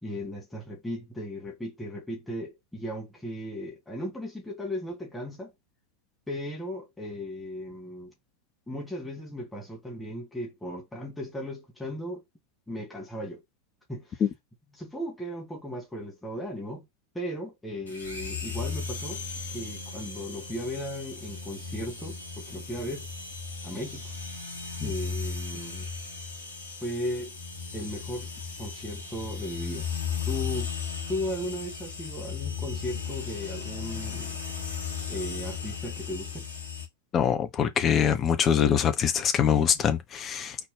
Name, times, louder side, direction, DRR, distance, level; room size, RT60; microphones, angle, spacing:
voice 1, 0.0-5.5 6.3-8.1 8.7-12.2 12.7-13.4 13.9-14.2 14.8-16.8 17.1-19.2 19.5-23.1 23.6-24.1 24.8-25.9 26.8-27.4 27.7-28.3 28.6-29.9 30.3-30.7 31.1-34.4 35.1-36.5, equal, 5° left, 2.2 m, -36 dB
sound 1, 17.9-36.9, left 6 dB, 80° left, 1.6 m, -36 dB
voice 2, 37.1-40.6, left 8 dB, 25° left, 0.9 m, -24 dB
4.2 x 3.3 x 3.3 m
figure-of-eight pair, 90°, 0 cm